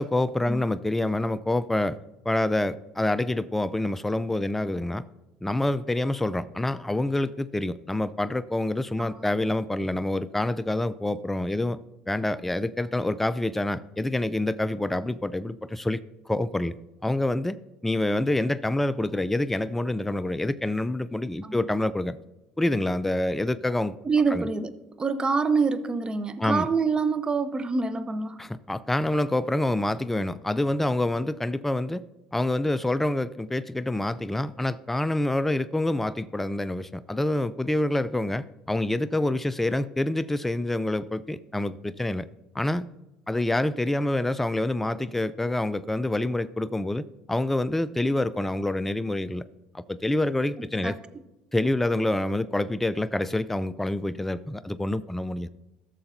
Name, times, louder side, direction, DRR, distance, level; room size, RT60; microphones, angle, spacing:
voice 1, 0.0-2.0 2.2-5.0 5.4-11.8 12.1-16.0 16.3-16.7 17.0-17.6 17.8-22.2 22.6-23.9 24.3-24.5 26.4-26.7 28.4-32.0 32.3-42.3 42.5-42.9 43.3-49.4 49.7-51.0 51.5-55.5, left 1 dB, 5° left, 0.4 m, -27 dB
voice 2, 24.0-24.7 25.0-28.4 50.8-50.9, right 4 dB, 25° right, 0.8 m, -26 dB
13.5 x 6.8 x 2.6 m
hypercardioid pair, 75°, 3 cm